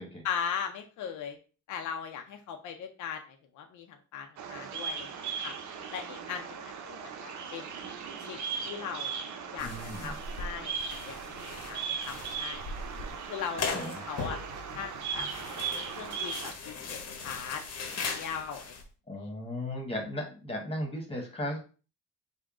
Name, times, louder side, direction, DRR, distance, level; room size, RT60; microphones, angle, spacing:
voice 1, 0.2-1.4 1.7-5.5 5.9-7.7 8.3-8.4 8.6-9.2 9.5-9.7 10.0-12.6 13.3-14.4 14.7-15.3 16.0-17.6 18.1-18.8, left 7 dB, 80° left, 5 dB, 0.6 m, -39 dB
Bird vocalization bird call bird song, 4.4-16.5, right 6 dB, 70° right, 0.7 m, -38 dB
sound 1, 9.6-18.8, left 4 dB, 55° left, 0.9 m, -39 dB
voice 2, 9.6-10.2 13.7-14.0 19.1-21.6, left 1 dB, 20° left, 2 dB, 1.3 m, -36 dB
3.7 x 2.2 x 3.6 m, 0.36 s
cardioid pair, 90°, 30 cm